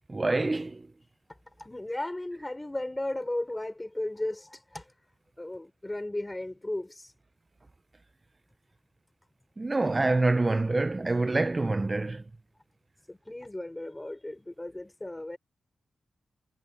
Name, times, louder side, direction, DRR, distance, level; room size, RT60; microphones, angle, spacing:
voice 1, 0.1-0.8 9.6-12.2, right 2 dB, 20° right, 0.5 m, -26 dB
voice 2, 1.6-4.9 5.4-7.1 13.1-15.4, left 1 dB, 15° left, 4.2 m, -35 dB
wide cardioid pair, 135°, 0 cm